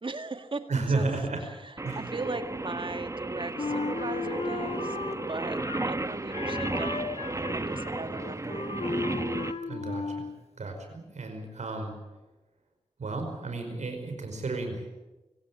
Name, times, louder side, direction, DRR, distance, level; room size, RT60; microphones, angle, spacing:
voice 1, 0.0-1.0 1.4-5.0 5.3-8.7 10.6-10.7, right 3 dB, 45° right, 8 dB, 2.0 m, -38 dB
voice 2, 0.7-1.4 1.8-2.0 9.7-10.3 10.6-11.9 13.0-14.9, right 3 dB, 90° right, 5 dB, 5.2 m, -32 dB
Singing, 1.8-9.5, right 2 dB, 25° right, 1.2 m, -34 dB
Wind instrument woodwind instrument, 3.6-6.0 6.3-10.4, left 3 dB, 65° left, 1.8 m, -35 dB
24.5 x 17.0 x 8.6 m, 1.1 s
wide cardioid pair, 65°, 12 cm